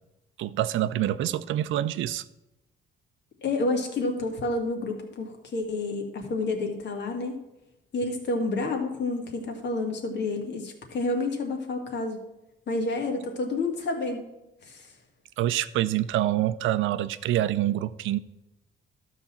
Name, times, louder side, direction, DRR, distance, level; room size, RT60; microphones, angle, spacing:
voice 1, 0.4-2.2 15.4-18.2, right 13 dB, 80° right, 14 dB, 0.5 m, -26 dB
voice 2, 3.4-7.4 7.9-12.2 12.7-14.3 14.6-14.9, left 2 dB, 60° left, 2 dB, 2.0 m, -29 dB
12.5 x 4.2 x 7.2 m, 0.92 s
cardioid pair, 90°, 20 cm